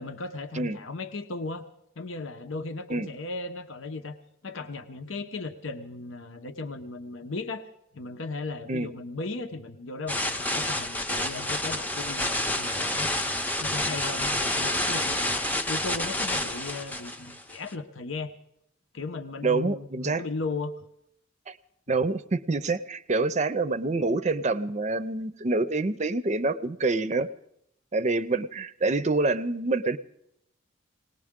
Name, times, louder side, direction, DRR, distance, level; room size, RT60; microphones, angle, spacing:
voice 1, 0.0-1.6 2.0-4.2 4.4-7.7 7.9-13.1 13.6-15.4 15.7-18.3 18.9-20.7, left 3 dB, 85° left, 7 dB, 0.9 m, -36 dB
sound 1, 10.1-17.7, left 1 dB, 10° left, 0.6 m, -29 dB
voice 2, 19.4-20.2 21.5-21.6 21.9-27.3 27.9-30.0, right 3 dB, 35° right, 13 dB, 0.6 m, -26 dB
19.5 x 18.5 x 3.7 m, 0.75 s
head